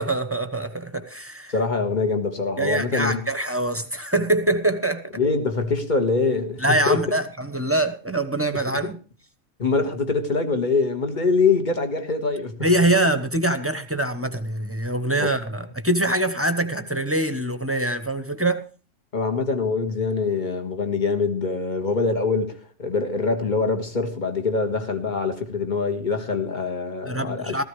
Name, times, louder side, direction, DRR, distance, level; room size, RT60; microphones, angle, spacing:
voice 1, 0.0-1.5 2.6-5.1 6.6-9.0 12.6-18.6 27.1-27.6, right 1 dB, 10° right, 1.1 m, -24 dB
voice 2, 1.5-3.2 5.2-7.2 9.6-12.6 15.2-15.3 19.1-27.6, left 4 dB, 35° left, 1.9 m, -24 dB
16.0 x 14.5 x 3.2 m
omnidirectional pair, 1.3 m